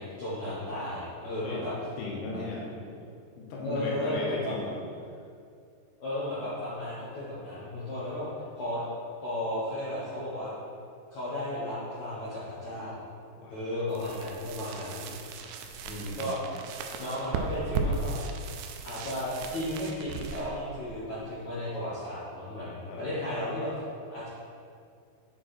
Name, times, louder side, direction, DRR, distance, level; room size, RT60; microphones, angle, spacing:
voice 1, 0.0-1.7 2.3-2.4 3.6-4.5 6.0-8.3 8.6-8.8 9.2-10.5 11.1-13.0 13.5-15.1 15.8-16.5 17.0-18.1 18.8-23.7 24.1-24.3, left 1 dB, 65° left, -11 dB, 1.9 m, -34 dB
voice 2, 2.0-3.1 3.4-4.8 13.4-13.7 15.8-16.3 22.9-23.0, left 3 dB, 85° left, -3 dB, 3.3 m, -37 dB
sound 1, 13.9-21.6, right 4 dB, 90° right, 2.2 m, -37 dB
8.3 x 4.7 x 4.3 m, 2.3 s
omnidirectional pair, 5.1 m